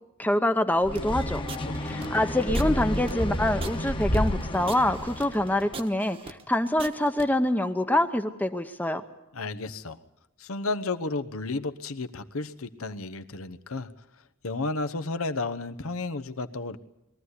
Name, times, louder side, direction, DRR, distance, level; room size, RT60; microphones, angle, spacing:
voice 1, 0.2-1.5 1.8-9.0, left 1 dB, 10° left, 8 dB, 0.8 m, -25 dB
sound 1, 0.8-5.7, equal, 25° left, 1.2 m, -30 dB
sound 2, 0.9-7.3, right 3 dB, 25° right, 1.2 m, -41 dB
voice 2, 1.6-2.2 9.3-10.0 10.4-13.9 14.4-16.8, left 3 dB, 80° left, 9 dB, 1.0 m, -32 dB
22.0 x 14.5 x 9.7 m, 0.93 s
head